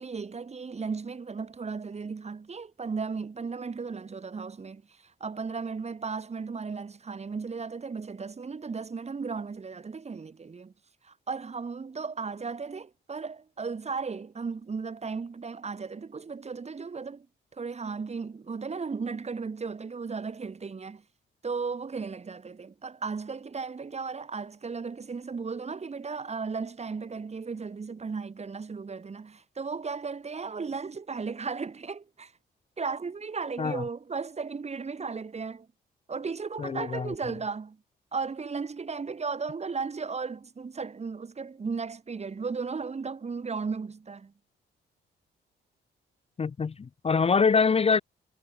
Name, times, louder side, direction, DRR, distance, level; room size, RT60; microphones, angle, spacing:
voice 1, 0.0-10.7 11.0-17.3 17.5-21.0 21.4-32.3 32.8-35.7 36.1-37.8 38.1-44.3, right 5 dB, 35° right, 4.3 m, -35 dB
voice 2, 36.6-37.1 46.4-48.0, left 5 dB, 30° left, 0.9 m, -24 dB
cardioid pair, 90°, 20 cm